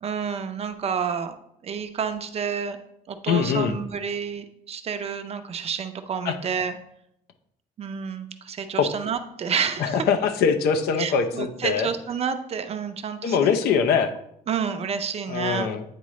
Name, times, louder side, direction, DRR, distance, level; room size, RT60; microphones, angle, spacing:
voice 1, 0.0-1.4 1.6-2.8 3.1-6.8 7.8-10.1 11.0-13.5 14.5-15.7, right 6 dB, 40° right, 8 dB, 0.6 m, -29 dB
voice 2, 3.2-3.8 6.2-6.4 8.8-8.9 9.8-11.9 13.2-14.1 15.3-15.8, left 6 dB, 85° left, 7 dB, 0.6 m, -22 dB
9.3 x 3.7 x 3.1 m, 0.76 s
cardioid pair, 125°, 16 cm